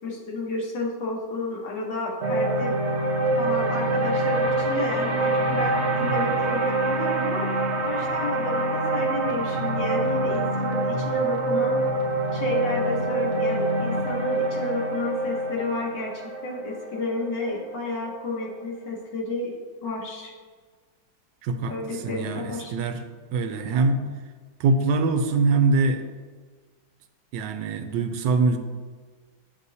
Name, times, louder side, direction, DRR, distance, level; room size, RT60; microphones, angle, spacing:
voice 1, 0.0-2.8 3.4-11.8 12.3-19.5 19.8-20.3 21.7-22.7, left 2 dB, 75° left, -1 dB, 1.9 m, -31 dB
sound 1, 2.2-18.5, right 2 dB, 55° right, 0.8 m, -25 dB
voice 2, 21.4-21.8 22.0-23.0 23.3-24.0 24.6-26.0 27.3-28.6, right 3 dB, 80° right, 7 dB, 1.3 m, -23 dB
9.8 x 6.1 x 2.7 m, 1.5 s
omnidirectional pair, 1.9 m